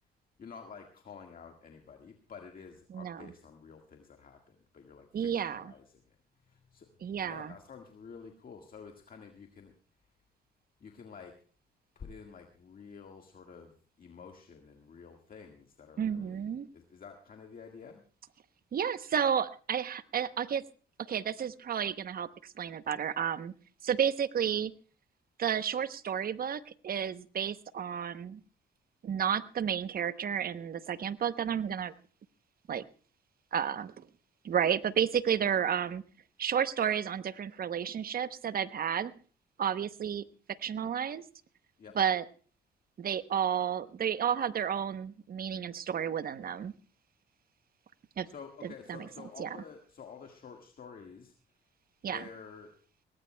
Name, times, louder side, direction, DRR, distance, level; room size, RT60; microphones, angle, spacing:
voice 1, 0.4-6.2 6.4-6.9 7.2-9.7 10.8-11.4 12.0-18.0 41.8-42.0 48.3-51.3 52.0-52.7, left 6 dB, 45° left, 3 dB, 1.7 m, -50 dB
voice 2, 2.9-3.3 5.1-5.7 7.0-7.5 16.0-16.7 18.7-20.6 21.1-23.5 23.8-24.7 25.4-28.4 29.0-31.9 32.7-32.8 33.5-34.1 34.4-36.0 36.4-39.1 39.6-40.2 40.6-41.2 42.0-42.2 43.0-46.7 48.2-48.3 48.9-49.1 49.4-49.6 52.0-52.2, right 8 dB, 50° right, 14 dB, 0.8 m, -31 dB
21.5 x 18.0 x 2.2 m, 0.40 s
cardioid pair, 90°, 20 cm